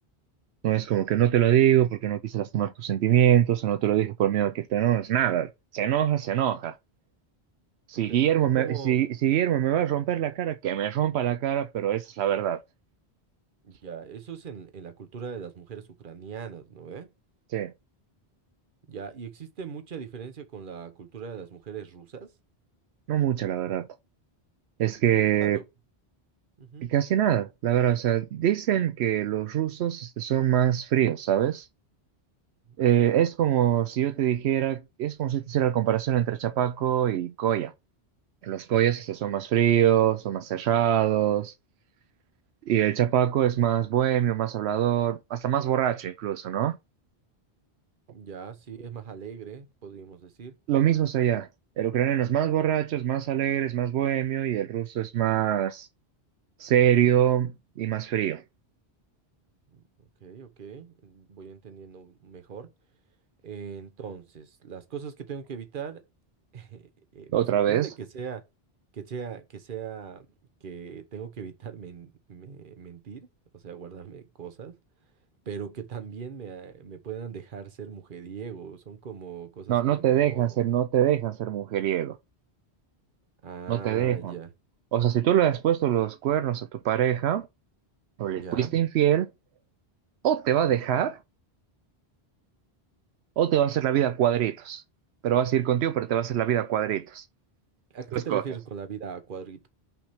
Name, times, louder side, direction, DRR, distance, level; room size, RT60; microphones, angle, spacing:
voice 1, 0.6-6.8 7.9-12.6 17.5-17.7 23.1-23.9 24.8-25.6 26.8-31.7 32.8-37.7 38.4-41.5 42.7-46.8 50.7-51.5 51.8-55.9 56.6-58.4 67.3-67.9 79.7-82.2 83.7-84.3 84.9-87.5 88.2-89.3 90.2-91.2 93.4-94.8 95.2-97.2 98.1-98.4, right 11 dB, 85° right, 0.8 m, -24 dB
voice 2, 8.6-9.0 13.6-17.1 18.9-22.3 25.1-25.6 26.6-26.9 32.7-33.2 48.1-50.5 59.7-62.7 63.4-66.0 66.5-68.4 68.9-70.3 70.6-73.3 73.5-74.8 75.5-80.6 83.4-84.5 88.4-88.7 97.9-99.7, right 7 dB, 55° right, 1.1 m, -40 dB
5.8 x 3.5 x 5.7 m
omnidirectional pair, 1.1 m